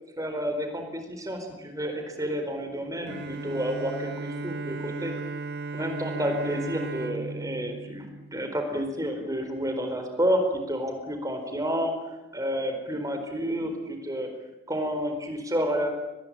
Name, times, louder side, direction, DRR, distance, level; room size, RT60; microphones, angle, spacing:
voice 1, 0.2-5.1 5.7-10.4 10.7-14.3 14.7-15.9, equal, 15° right, 5 dB, 4.4 m, -30 dB
Bowed string instrument, 3.1-9.0, right 3 dB, 45° right, 0.8 m, -36 dB
24.0 x 20.5 x 8.8 m, 0.97 s
head